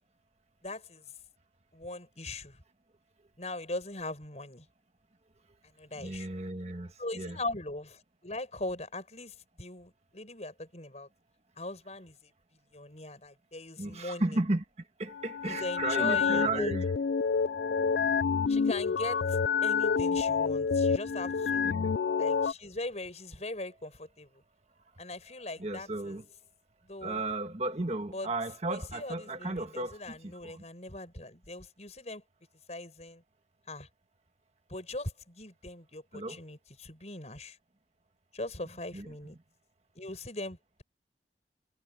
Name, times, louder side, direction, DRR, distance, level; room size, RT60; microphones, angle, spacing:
voice 1, 0.6-1.1 1.7-2.6 3.4-4.7 5.7-6.3 7.0-11.1 11.6-12.3 12.7-14.4 15.4-16.7 18.5-21.7 22.2-24.4 25.0-26.2 26.8-27.2 28.1-28.3 28.7-32.2 32.7-33.2 33.7-33.9 34.7-37.6 38.3-39.4 40.0-40.8, left 2 dB, 40° left, 7.2 m, -40 dB
voice 2, 5.9-7.4 13.8-16.9 21.6-21.9 24.8-24.9 25.6-26.2 27.0-30.6 36.1-36.4 38.9-39.1, right 2 dB, 35° right, 1.6 m, -34 dB
sound 1, 15.1-22.5, left 6 dB, 65° left, 0.3 m, -28 dB
head